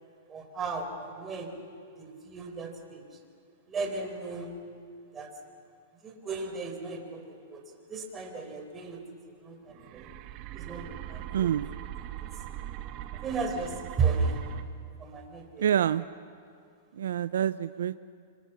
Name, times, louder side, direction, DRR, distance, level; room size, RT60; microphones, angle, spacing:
voice 1, 0.3-1.5 2.0-3.0 3.7-4.5 5.1-5.3 6.0-7.6 7.9-9.0 9.4-10.1 10.5-11.5 12.1-12.2 13.2-14.4 15.0-15.7, right 4 dB, 20° right, 3 dB, 4.0 m, -34 dB
sound 1, 9.7-14.6, right 12 dB, 35° right, 1.3 m, -41 dB
voice 2, 11.3-11.7 15.6-16.0 16.9-18.0, right 9 dB, 80° right, 14 dB, 0.5 m, -27 dB
26.0 x 25.5 x 7.2 m, 2.3 s
hypercardioid pair, 145°, 0 cm